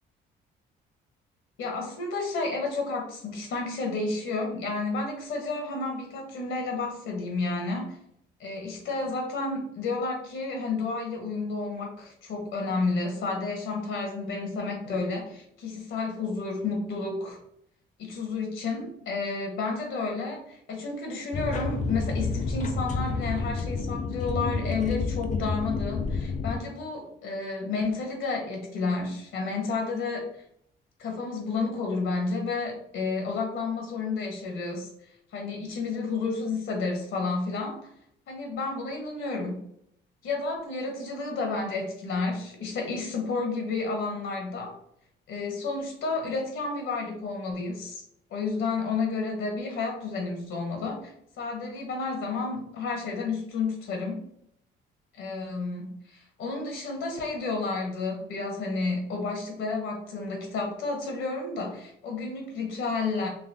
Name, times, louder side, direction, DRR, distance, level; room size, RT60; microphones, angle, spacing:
voice 1, 1.6-8.0 8.4-17.4 18.0-30.3 31.0-34.9 35.3-37.8 38.3-39.6 40.2-44.8 45.3-48.0 48.3-54.2 55.1-63.3, left 3 dB, 80° left, 2 dB, 1.2 m, -31 dB
sound 1, 21.3-26.6, left 4 dB, 40° left, 0.5 m, -30 dB
3.9 x 2.8 x 2.9 m, 0.72 s
cardioid pair, 90°, 20 cm